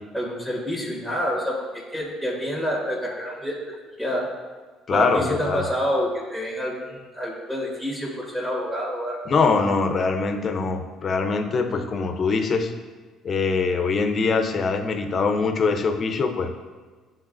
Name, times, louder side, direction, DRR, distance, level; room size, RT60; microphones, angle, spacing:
voice 1, 0.1-3.5 4.0-4.3 4.9-9.2, equal, 10° right, -4 dB, 1.6 m, -28 dB
voice 2, 4.9-5.6 9.3-12.7 13.2-16.6, left 4 dB, 45° left, 6 dB, 0.7 m, -23 dB
10.0 x 3.7 x 2.6 m, 1.4 s
supercardioid pair, 90°, 0 cm